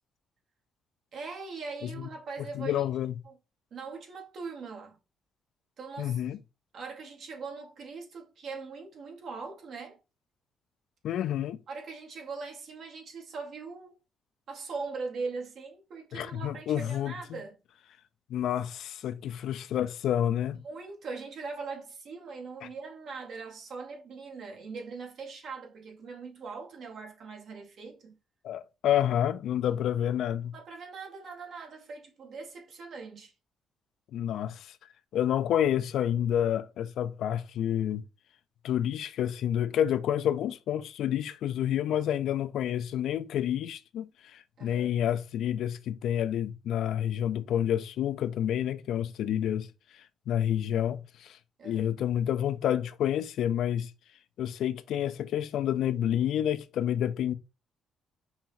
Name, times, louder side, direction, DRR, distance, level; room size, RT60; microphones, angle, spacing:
voice 1, 1.1-2.9 3.2-3.4 3.7-5.0 5.8-6.2 6.7-10.0 11.7-14.0 14.5-17.6 20.6-28.2 30.5-33.3 44.6-44.9 51.6-52.0, right 4 dB, 65° right, 1.2 m, -41 dB
voice 2, 2.5-3.2 6.0-6.4 11.0-11.6 16.1-17.4 18.3-20.6 22.6-22.7 28.4-30.5 34.1-34.8 35.1-38.0 38.6-49.7 49.9-51.4 51.6-53.9 54.4-57.3, left 10 dB, 75° left, 0.4 m, -29 dB
5.5 x 2.2 x 3.0 m
cardioid pair, 90°, 0 cm